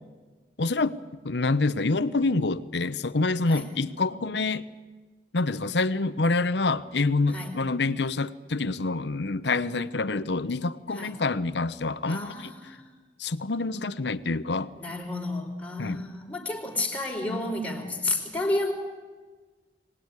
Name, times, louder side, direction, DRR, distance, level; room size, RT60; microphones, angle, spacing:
voice 1, 0.6-1.0 1.2-4.6 5.3-12.8 13.2-14.7 15.8-16.0, left 3 dB, 75° left, 14 dB, 0.9 m, -27 dB
voice 2, 12.1-12.9 14.8-18.7, left 2 dB, 10° left, 0 dB, 3.8 m, -31 dB
24.0 x 19.0 x 9.7 m, 1.3 s
head